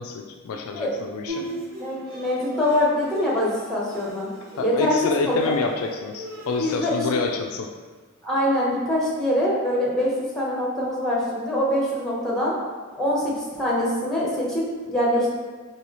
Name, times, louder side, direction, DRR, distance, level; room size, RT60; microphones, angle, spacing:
voice 1, 0.0-1.5 4.6-7.7, left 4 dB, 70° left, 4 dB, 0.3 m, -27 dB
voice 2, 1.3-4.3 4.6-5.0 5.2-5.5 6.6-6.9 8.2-12.5 13.0-15.3, left 1 dB, ahead, -5 dB, 0.9 m, -24 dB
Bowed string instrument, 1.3-6.7, right 1 dB, 45° right, 0.8 m, -39 dB
4.7 x 3.0 x 3.0 m, 1.5 s
head